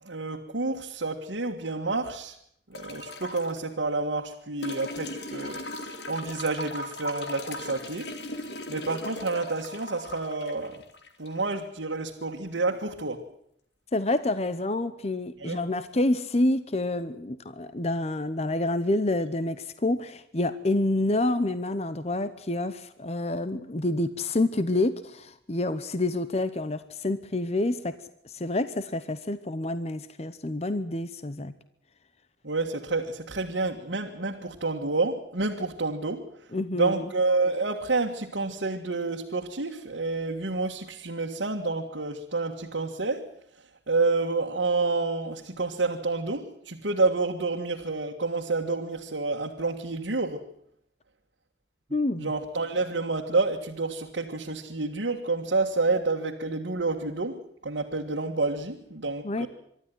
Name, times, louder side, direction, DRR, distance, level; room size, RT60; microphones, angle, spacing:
voice 1, 0.0-2.3 2.7-8.1 8.7-10.8 11.2-13.2 15.4-15.6 32.4-36.3 36.7-43.3 43.9-50.4 52.2-59.5, right 3 dB, 85° right, -1 dB, 1.7 m, -29 dB
sound 1, 2.7-3.6 4.6-11.6 13.0-13.1, left 1 dB, 70° left, 2.3 m, -38 dB
voice 2, 13.9-28.0 28.2-31.5 36.5-37.1 51.9-52.3 59.2-59.5, left 2 dB, 35° left, 13 dB, 0.8 m, -28 dB
24.0 x 13.0 x 9.4 m, 0.70 s
head